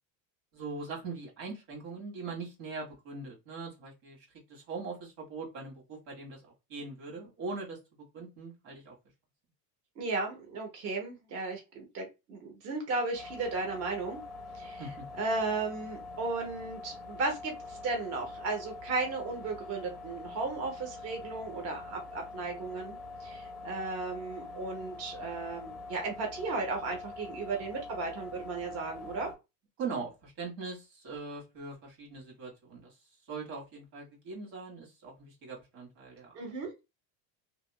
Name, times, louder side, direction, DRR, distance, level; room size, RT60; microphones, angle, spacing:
voice 1, 0.5-8.9 14.8-15.0 29.8-33.0 33.3-36.4, right 4 dB, 90° right, 0 dB, 1.7 m, -41 dB
voice 2, 10.0-14.2 14.5-14.9 15.2-29.3 36.3-36.7, right 3 dB, 35° right, 2 dB, 0.7 m, -35 dB
sound 1, 13.1-29.3, left 3 dB, ahead, 0.6 m, -44 dB
2.8 x 2.4 x 2.3 m, 0.25 s
cardioid pair, 165°, 41 cm